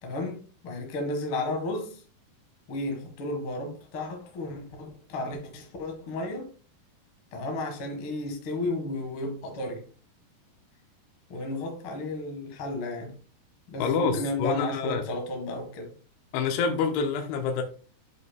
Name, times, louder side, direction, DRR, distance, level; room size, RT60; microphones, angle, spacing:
voice 1, 0.0-2.0 2.7-6.5 7.3-9.9 11.3-13.2 13.7-15.9, left 2 dB, 60° left, 1.4 m, -33 dB
voice 2, 13.8-15.0 16.3-17.6, left 5 dB, 85° left, 2.9 m, -27 dB
9.4 x 5.4 x 2.2 m
omnidirectional pair, 4.8 m